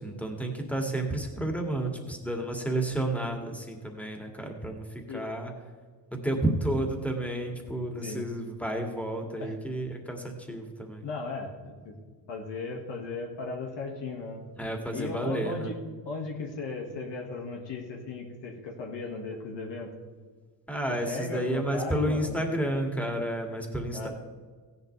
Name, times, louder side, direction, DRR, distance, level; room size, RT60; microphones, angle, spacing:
voice 1, 0.0-5.5 6.1-11.1 14.6-15.7 20.7-24.1, right 1 dB, 5° left, 2 dB, 2.4 m, -31 dB
voice 2, 11.0-11.9 12.3-14.4 14.9-15.7 16.1-19.9 20.9-22.4 23.9-24.1, left 3 dB, 70° left, 1 dB, 2.0 m, -36 dB
16.0 x 11.0 x 3.4 m, 1.5 s
cardioid pair, 85°, 44 cm